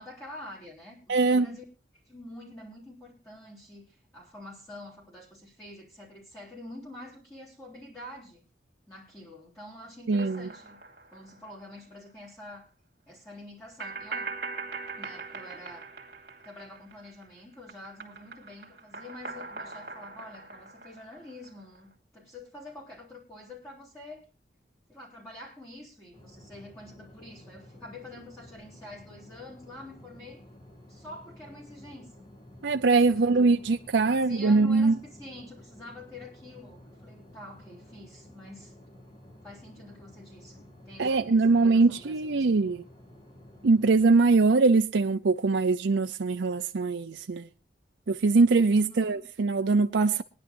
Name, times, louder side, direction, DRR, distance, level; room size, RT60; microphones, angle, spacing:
voice 1, 0.0-1.6 1.9-8.4 8.9-10.8 11.1-12.7 13.1-14.3 15.0-15.9 16.4-24.3 24.9-30.4 30.9-32.3 32.9-33.3 34.1-38.7 39.4-42.5 48.8-49.2, left 1 dB, 15° left, 3.7 m, -47 dB
voice 2, 1.1-1.5 10.1-10.5 32.6-35.0 41.0-42.8 43.6-47.5 48.1-50.2, right 3 dB, 90° right, 0.6 m, -22 dB
sound 1, 10.1-11.8 12.1-12.2 13.8-17.3 17.5-21.8, right 4 dB, 60° right, 2.6 m, -41 dB
sound 2, 26.1-44.1, left 1 dB, 30° left, 2.3 m, -52 dB
22.0 x 10.5 x 2.6 m
head